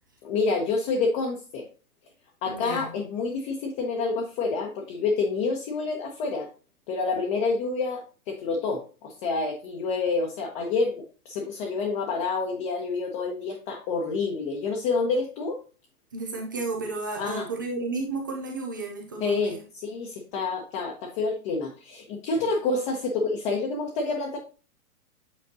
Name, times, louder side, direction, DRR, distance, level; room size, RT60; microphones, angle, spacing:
voice 1, 0.2-1.7 2.4-6.5 6.9-15.6 17.2-17.5 19.2-24.4, left 4 dB, 30° left, 1 dB, 1.1 m, -28 dB
voice 2, 2.5-2.9 16.1-19.6 22.4-22.5, right 3 dB, 15° right, 2 dB, 0.3 m, -33 dB
8.5 x 4.2 x 2.7 m, 0.35 s
hypercardioid pair, 135°, 44 cm